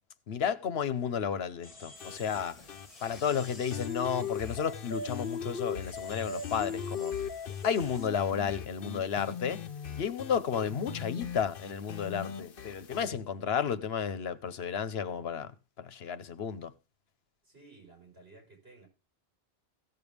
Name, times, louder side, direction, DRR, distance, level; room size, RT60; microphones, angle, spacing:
voice 1, 0.3-2.6 3.0-7.1 7.6-9.6 10.0-15.5 15.8-16.7, left 7 dB, 80° left, 1.1 m, -32 dB
sound 1, 1.6-8.1, left 2 dB, 35° left, 1.9 m, -52 dB
sound 2, 2.0-13.1, left 6 dB, 60° left, 1.0 m, -39 dB
sound 3, 7.4-15.2, right 1 dB, 60° right, 6.7 m, -66 dB
voice 2, 17.4-18.9, right 3 dB, 80° right, 5.0 m, -55 dB
17.0 x 7.0 x 3.4 m
omnidirectional pair, 1.0 m